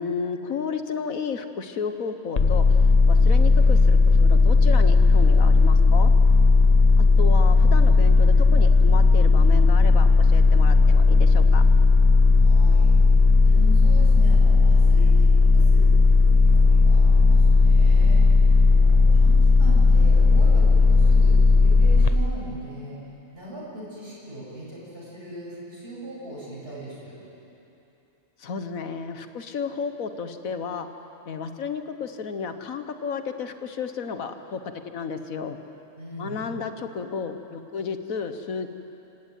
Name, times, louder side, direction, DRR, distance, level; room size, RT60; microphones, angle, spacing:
voice 1, 0.0-6.1 7.0-11.6 28.4-30.9 31.3-34.6 34.8-35.6 36.2-38.7, left 5 dB, 70° left, 8 dB, 1.6 m, -32 dB
sound 1, 2.4-22.1, left 3 dB, 35° left, 0.7 m, -16 dB
voice 2, 12.3-13.0 13.4-18.3 18.7-23.0 23.3-27.2 36.0-36.4, equal, 40° right, -8 dB, 8.0 m, -39 dB
26.5 x 16.5 x 9.4 m, 3.0 s
omnidirectional pair, 1.5 m